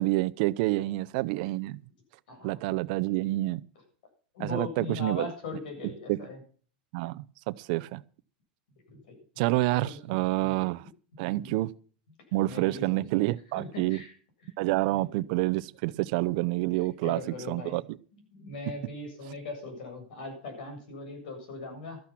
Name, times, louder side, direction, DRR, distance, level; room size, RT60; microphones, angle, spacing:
voice 1, 0.0-1.8 2.4-3.6 4.4-5.3 6.1-6.2 6.9-8.0 9.4-10.8 11.2-11.7 12.3-14.0 14.6-17.2 17.5-17.8, right 19 dB, 60° right, 0.7 m, -28 dB
voice 2, 2.3-2.6 4.3-6.4 8.9-9.1 9.7-10.0 10.4-10.6 11.3-11.5 12.5-13.0 13.5-14.1 14.9-15.1 16.7-17.8 18.1-22.0, left 3 dB, 75° left, 7.5 m, -40 dB
13.0 x 10.0 x 5.9 m
supercardioid pair, 120°, 5 cm